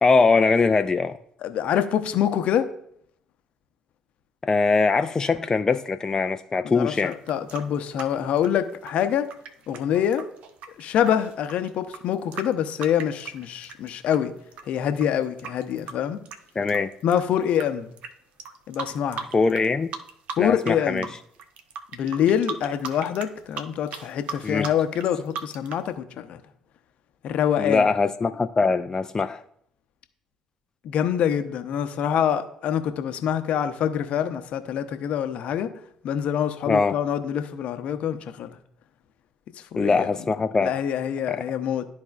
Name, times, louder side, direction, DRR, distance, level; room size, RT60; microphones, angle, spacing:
voice 1, 0.0-1.2 4.4-7.1 16.6-16.9 19.3-19.9 20.4-21.0 24.4-24.7 27.6-29.4 36.7-36.9 39.8-40.7, left 4 dB, 25° left, 0.4 m, -22 dB
voice 2, 1.4-2.7 6.7-9.3 9.7-10.2 10.8-14.3 14.7-16.2 17.0-17.9 18.7-19.3 20.4-21.1 21.9-26.4 27.2-27.9 30.8-35.7 36.0-38.6 39.7-40.1 40.6-41.9, left 9 dB, 60° left, 0.7 m, -25 dB
sound 1, 7.1-14.2 14.5-17.6 18.0-18.1 18.4-19.7 19.9-20.7 21.0-25.9, right 6 dB, 60° right, 0.7 m, -37 dB
12.5 x 4.3 x 2.4 m
hypercardioid pair, 55°, 2 cm